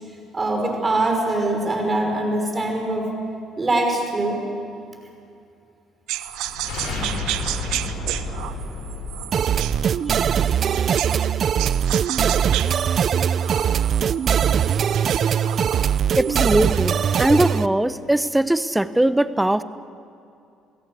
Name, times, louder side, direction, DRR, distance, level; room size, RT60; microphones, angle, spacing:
voice 1, 0.3-3.1 3.6-4.4 11.8-11.9, right 2 dB, 25° right, 3 dB, 5.7 m, -23 dB
sound 1, 6.1-11.3 11.6-16.9, right 13 dB, 85° right, 0.9 m, -32 dB
sound 2, 6.3-11.4, left 2 dB, 75° left, 7.9 m, -32 dB
sound 3, 9.3-17.7, right 8 dB, 50° right, 0.6 m, -21 dB
voice 2, 16.2-19.6, right 1 dB, 5° right, 13 dB, 0.9 m, -20 dB
28.0 x 17.5 x 8.3 m, 2.6 s
cardioid pair, 100°, 0 cm